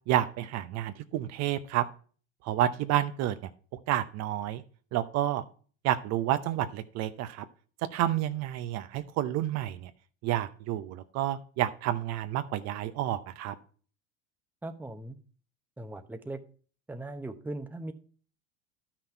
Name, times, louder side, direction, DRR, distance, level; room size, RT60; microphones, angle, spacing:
voice 1, 0.1-1.9 2.4-3.3 3.9-4.6 4.9-5.4 5.8-7.4 7.9-9.9 10.2-13.5, right 12 dB, 50° right, 10 dB, 0.7 m, -29 dB
voice 2, 14.6-15.2 15.8-16.4 16.9-17.9, right 2 dB, 5° right, 6 dB, 0.9 m, -39 dB
11.5 x 5.9 x 4.5 m, 0.42 s
hypercardioid pair, 90°, 34 cm